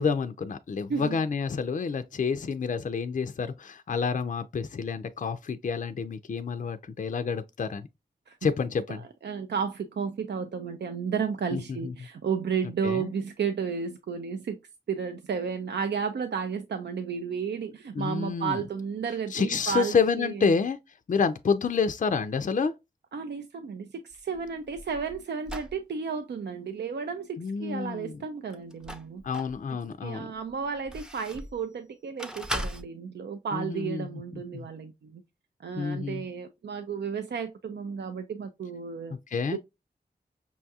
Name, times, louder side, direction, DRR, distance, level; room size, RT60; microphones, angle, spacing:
voice 1, 0.0-7.9 8.4-9.0 11.5-11.9 12.8-13.1 18.0-18.6 19.3-20.8 21.1-22.7 27.4-28.2 29.2-30.3 33.5-34.1 34.3-34.7 35.8-36.2 39.3-39.6, left 5 dB, 50° left, 0.4 m, -28 dB
voice 2, 8.9-14.6 14.9-20.5 23.1-29.2 30.0-35.2 35.6-39.1 39.5-39.6, right 6 dB, 80° right, 0.4 m, -33 dB
sound 1, 24.1-25.8 28.5-29.6 30.1-31.6 32.2-32.8, equal, 5° right, 0.5 m, -37 dB
5.5 x 2.3 x 2.6 m
cardioid pair, 50°, 17 cm